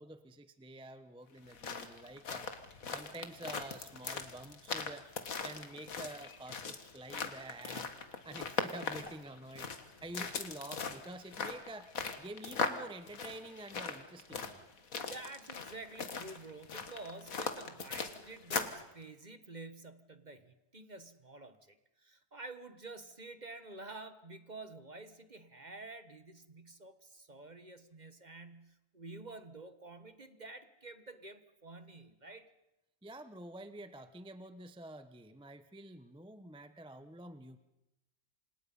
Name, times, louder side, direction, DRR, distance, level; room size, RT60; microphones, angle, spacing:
voice 1, 0.0-5.0 5.4-7.9 8.2-9.7 10.0-11.9 12.2-14.6 33.0-37.6, right 1 dB, 5° right, 10 dB, 0.8 m, -48 dB
sound 1, 1.4-18.8, left 5 dB, 60° left, 2.0 m, -40 dB
voice 2, 15.0-32.5, right 3 dB, 30° right, 10 dB, 1.3 m, -49 dB
28.0 x 26.5 x 5.5 m, 0.92 s
omnidirectional pair, 1.6 m